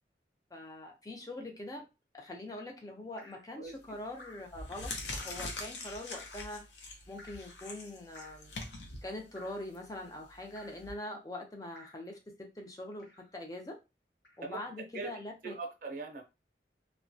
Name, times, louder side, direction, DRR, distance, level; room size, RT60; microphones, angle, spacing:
voice 1, 0.5-1.9 2.1-4.9 5.2-6.7 7.1-8.5 9.0-13.8 14.4-15.5, left 1 dB, 20° left, 1 dB, 0.5 m, -43 dB
Drip, 3.2-3.5 4.2-4.5 5.2-5.5 6.1-6.5 7.2-7.5 8.1-8.5 9.4-9.7 10.6-10.9 11.7-12.1 13.0-13.3 14.2-14.4, left 2 dB, 65° left, 0.9 m, -55 dB
sound 1, 3.7-4.0 4.4-10.9, left 2 dB, 90° left, 0.6 m, -43 dB
voice 2, 15.4-16.2, right 4 dB, 50° right, 3 dB, 0.6 m, -40 dB
2.9 x 2.1 x 2.6 m, 0.27 s
head